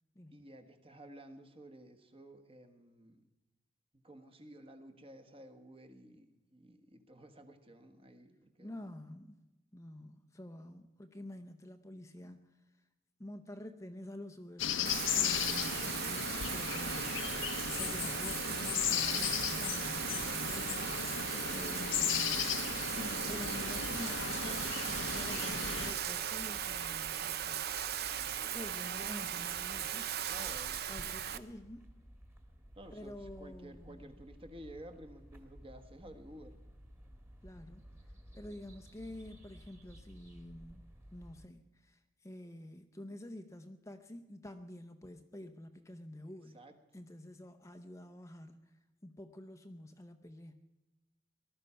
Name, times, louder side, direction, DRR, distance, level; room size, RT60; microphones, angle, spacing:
voice 1, 0.3-3.2 4.0-8.7 21.1-22.0 28.2-28.6 30.3-30.9 32.7-36.6 46.5-46.8, right 1 dB, 30° right, 7 dB, 1.4 m, -53 dB
voice 2, 8.6-9.4 9.7-12.9 13.2-27.6 28.5-30.2 30.9-31.9 32.9-34.1 37.4-37.9 38.3-46.6 46.9-50.6, left 1 dB, 15° left, 7 dB, 0.7 m, -49 dB
sound 1, 14.6-25.9, left 8 dB, 70° left, 0.8 m, -36 dB
Bathtub (filling or washing), 14.8-31.4, right 9 dB, 55° right, 0.7 m, -38 dB
sound 2, 23.3-41.5, equal, 15° right, 1.8 m, -55 dB
19.0 x 12.5 x 5.7 m, 1.1 s
head